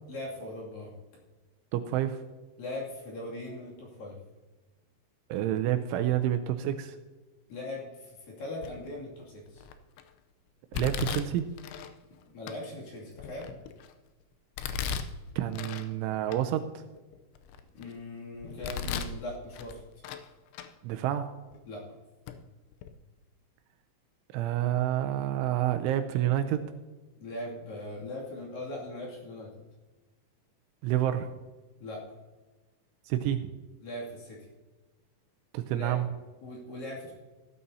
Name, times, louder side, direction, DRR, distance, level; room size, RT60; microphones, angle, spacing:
voice 1, 0.1-1.0 2.6-4.2 7.5-9.6 12.1-13.5 17.7-19.8 21.7-21.8 27.2-29.5 31.8-32.0 33.8-34.4 35.7-36.0 36.4-37.1, left 1 dB, 50° left, -4 dB, 3.7 m, -40 dB
voice 2, 1.7-2.2 5.3-7.0 10.7-11.5 15.4-16.8 20.8-21.3 24.3-26.6 30.8-31.3 33.1-33.5 35.5-36.1, right 12 dB, 85° right, 8 dB, 2.9 m, -28 dB
Domestic sounds home sounds, 8.6-9.0 9.6-10.0 10.7-11.9 12.5-12.6 13.2-13.9 14.6-15.9 16.3-16.4 17.0-17.9 18.4-19.2 19.5-20.3 20.5-20.7 21.5-21.6 22.3-22.4 22.7-22.9, left 6 dB, 80° left, 2.9 m, -36 dB
15.0 x 12.5 x 2.8 m, 1.2 s
omnidirectional pair, 5.7 m